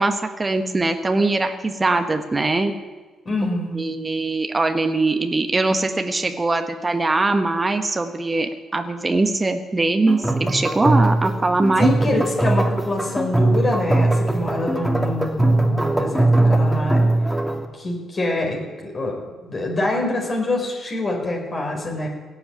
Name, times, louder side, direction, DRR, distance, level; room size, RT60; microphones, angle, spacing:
voice 1, 0.0-2.7 3.7-12.2, right 2 dB, 25° right, 6 dB, 1.5 m, -21 dB
voice 2, 3.2-3.8 11.8-17.1 17.7-19.1 19.4-22.1, left 2 dB, 40° left, 0 dB, 5.0 m, -25 dB
sound 1, 10.1-17.6, right 2 dB, ahead, 2.7 m, -20 dB
17.5 x 8.8 x 8.9 m, 1.3 s
figure-of-eight pair, 40°, 0 cm